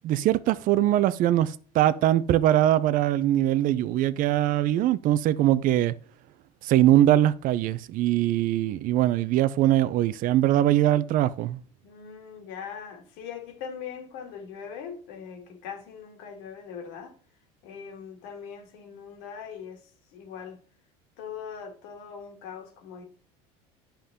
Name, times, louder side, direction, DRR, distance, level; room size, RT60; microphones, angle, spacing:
voice 1, 0.0-5.9 6.6-11.6, right 13 dB, 55° right, 0.6 m, -22 dB
voice 2, 11.8-17.1 17.6-20.6 21.2-23.0, left 7 dB, 75° left, 2.2 m, -41 dB
10.0 x 5.7 x 3.7 m
supercardioid pair, 95°, 17 cm